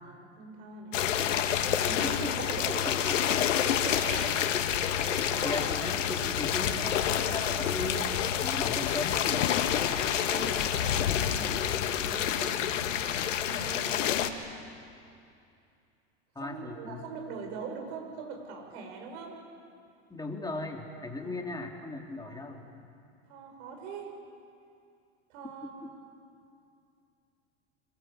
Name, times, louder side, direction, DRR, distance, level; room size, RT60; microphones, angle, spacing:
voice 1, 0.0-0.9 1.6-2.9 3.6-4.5 5.3-5.7 8.1-8.3 10.2-11.6 12.0-12.7 13.4-14.4 16.4-19.4 21.2-21.3 22.2-22.5 23.3-24.1 25.3-26.0, right 4 dB, 65° right, 3 dB, 7.0 m, -42 dB
sound 1, 0.9-14.3, left 9 dB, 85° left, 1.7 m, -28 dB
voice 2, 2.0-2.3 2.8-3.4 5.2-8.1 8.4-9.5 16.4-17.0 20.1-22.6 25.8-25.9, left 2 dB, 10° left, 1 dB, 3.8 m, -37 dB
26.5 x 21.0 x 8.3 m, 2.5 s
hypercardioid pair, 100°, 37 cm